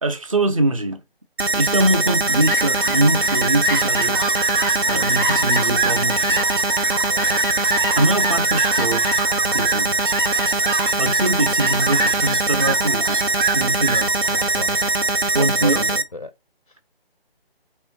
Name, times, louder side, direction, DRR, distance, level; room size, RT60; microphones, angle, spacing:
voice 1, 0.0-1.0 1.5-4.3 4.9-6.6 7.9-9.2 9.5-9.9 11.0-13.2 13.5-14.1 15.3-16.0, right 2 dB, 35° right, 0.8 m, -22 dB
sound 1, 1.4-16.0, right 2 dB, 80° right, 0.9 m, -21 dB
Fowl, 1.9-15.8, right 3 dB, 55° right, 1.1 m, -27 dB
voice 2, 14.3-14.8 15.3-16.3, left 2 dB, 40° left, 0.4 m, -33 dB
4.5 x 3.4 x 2.9 m
figure-of-eight pair, 150°, 31 cm